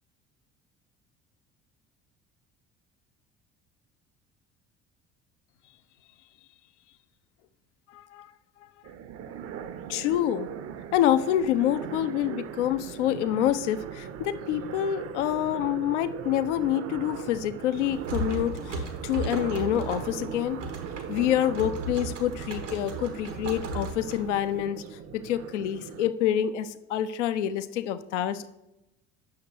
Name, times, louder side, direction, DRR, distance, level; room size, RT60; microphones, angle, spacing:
voice 1, 7.9-8.3 9.9-10.5 10.9-20.6 21.1-24.8 25.2-28.5, left 11 dB, 75° left, 13 dB, 0.5 m, -27 dB
sound 1, 8.8-26.1, right 9 dB, 40° right, 0.5 m, -39 dB
sound 2, 17.7-24.6, right 2 dB, 85° right, 1.1 m, -36 dB
8.6 x 6.4 x 2.8 m, 0.91 s
figure-of-eight pair, 55°, 36 cm